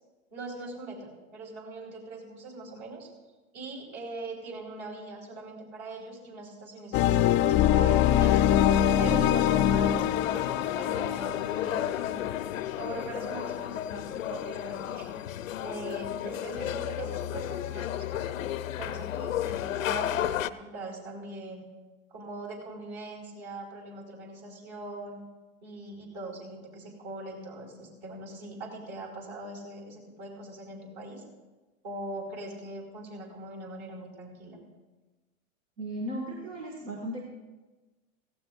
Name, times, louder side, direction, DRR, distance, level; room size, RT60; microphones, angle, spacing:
voice 1, 0.3-3.1 3.5-8.4 9.0-12.3 12.8-15.1 15.6-18.3 18.8-21.7 22.1-25.2 25.6-31.2 31.8-34.6, right 2 dB, 55° right, -1 dB, 5.1 m, -41 dB
sound 1, 6.9-13.8, left 11 dB, 30° left, 0.4 m, -24 dB
sound 2, 9.4-20.5, left 11 dB, 85° left, 0.6 m, -33 dB
voice 2, 35.8-37.2, right 1 dB, 75° right, 0 dB, 2.2 m, -36 dB
17.0 x 16.0 x 2.6 m, 1.2 s
hypercardioid pair, 105°, 39 cm